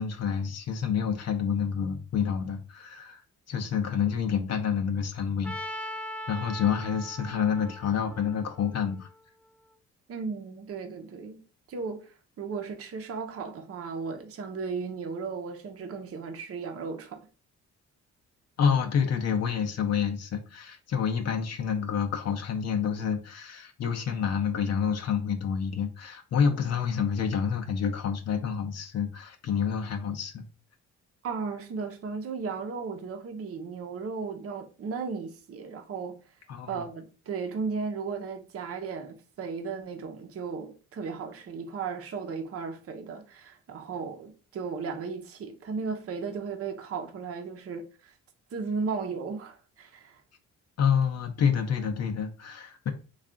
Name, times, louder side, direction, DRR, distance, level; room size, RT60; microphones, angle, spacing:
voice 1, 0.0-3.2 3.5-5.9 6.3-9.1 18.6-30.4 36.5-36.8 50.8-52.9, left 7 dB, 55° left, 0.7 m, -28 dB
Trumpet, 5.4-9.5, equal, 5° left, 0.4 m, -40 dB
voice 2, 10.1-11.4 11.7-17.3 31.2-36.2 36.7-48.1 48.5-50.2, right 5 dB, 50° right, 0.7 m, -35 dB
3.3 x 2.4 x 3.7 m
cardioid pair, 90°, 30 cm